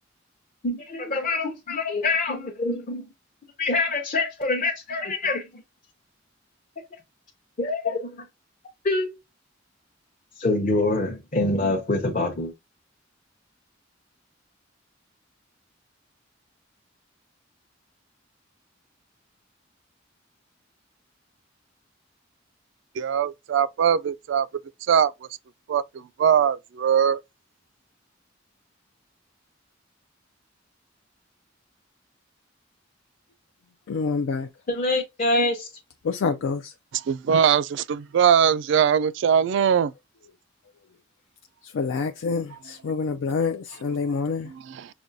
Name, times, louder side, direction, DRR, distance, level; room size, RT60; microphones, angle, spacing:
voice 1, 0.6-3.1 3.6-5.6 7.6-8.3 8.8-9.1 10.4-12.5 34.7-35.7, left 2 dB, 40° left, 0.7 m, -25 dB
voice 2, 23.0-24.5 24.9-25.1 25.7-25.8 26.2-27.2 36.9-39.9 44.5-44.9, right 8 dB, 65° right, 0.3 m, -21 dB
voice 3, 33.9-34.5 36.0-36.7 41.6-44.5, left 5 dB, 85° left, 0.4 m, -27 dB
6.0 x 2.2 x 2.6 m
head